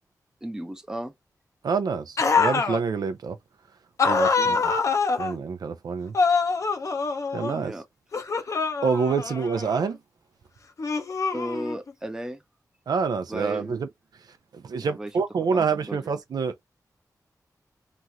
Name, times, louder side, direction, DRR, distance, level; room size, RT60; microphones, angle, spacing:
voice 1, 0.4-1.1 4.4-4.6 7.5-7.9 11.3-12.4 13.3-13.8 14.8-15.1 15.5-16.1, right 1 dB, 10° right, 0.5 m, -35 dB
voice 2, 1.6-3.4 4.0-4.7 5.2-6.1 7.3-7.7 8.8-10.0 12.9-13.9 14.5-16.6, right 5 dB, 80° right, 0.4 m, -27 dB
sound 1, 2.2-2.8 4.0-5.4 6.1-7.6 8.1-9.9 10.8-11.9, left 4 dB, 50° left, 0.5 m, -25 dB
2.9 x 2.4 x 2.7 m
wide cardioid pair, 135°, 7 cm